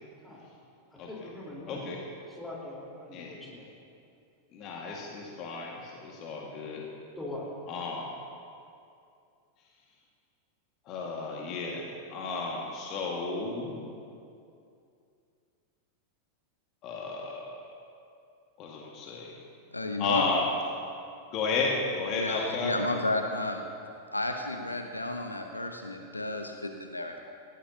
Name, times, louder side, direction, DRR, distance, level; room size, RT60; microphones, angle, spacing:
voice 1, 0.9-1.9 2.3-3.7 7.2-7.5, left 2 dB, 10° left, -4 dB, 4.2 m, -42 dB
voice 2, 4.5-6.8 7.7-8.1 10.9-13.9 16.8-17.6 18.6-19.3 20.0-20.4 21.3-22.7, left 4 dB, 35° left, -2 dB, 1.9 m, -33 dB
voice 3, 19.7-20.2 22.1-23.6 24.1-27.2, left 2 dB, 85° left, 4 dB, 0.9 m, -32 dB
19.5 x 15.5 x 2.9 m, 2.5 s
figure-of-eight pair, 90°, 0 cm